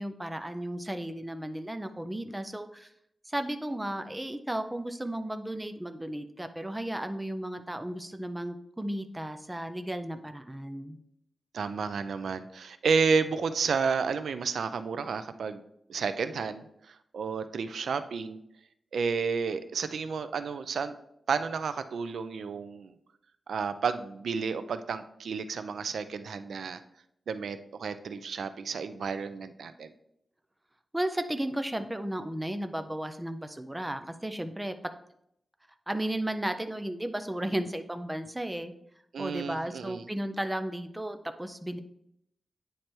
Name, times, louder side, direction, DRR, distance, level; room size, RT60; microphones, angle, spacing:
voice 1, 0.0-2.9 3.3-11.0 30.9-34.7 35.9-38.7 39.2-41.8, right 1 dB, 10° right, 8 dB, 0.4 m, -34 dB
voice 2, 11.5-15.6 15.9-18.4 18.9-21.0 21.3-22.9 23.5-26.8 27.3-29.9 39.1-40.1, right 5 dB, 90° right, 11 dB, 0.4 m, -31 dB
9.2 x 3.3 x 4.4 m, 0.75 s
wide cardioid pair, 160°, 0 cm